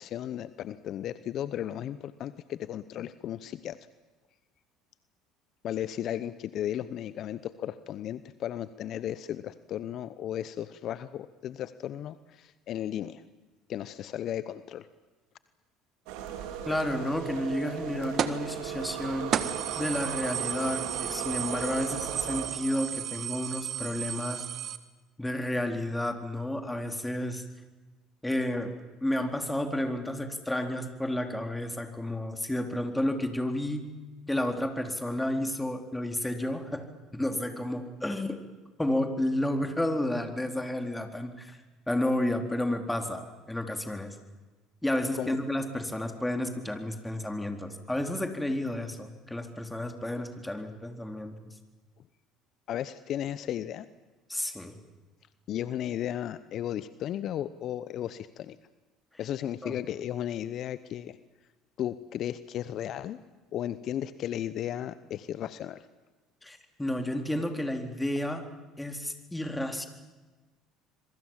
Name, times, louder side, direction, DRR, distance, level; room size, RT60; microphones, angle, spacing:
voice 1, 0.0-3.9 5.6-13.2 13.7-14.9 45.1-45.4 52.7-53.9 55.5-58.6 59.2-61.2 61.8-63.2 63.5-65.9, left 11 dB, 55° left, 14 dB, 0.9 m, -35 dB
sound 1, 16.1-22.5, right 8 dB, 70° right, 3.8 m, -37 dB
voice 2, 16.7-19.5 19.8-24.5 25.2-27.4 28.2-28.7 29.0-33.9 34.3-38.4 38.8-41.6 41.9-44.2 44.8-51.5 54.3-54.8 59.6-59.7 66.4-68.5 68.8-69.9, left 1 dB, 10° left, 5 dB, 4.1 m, -31 dB
sound 2, 18.2-18.5 18.9-19.0 19.3-24.8, right 9 dB, 50° right, 1.7 m, -33 dB
27.0 x 23.0 x 7.5 m, 1.2 s
hypercardioid pair, 65°, 0 cm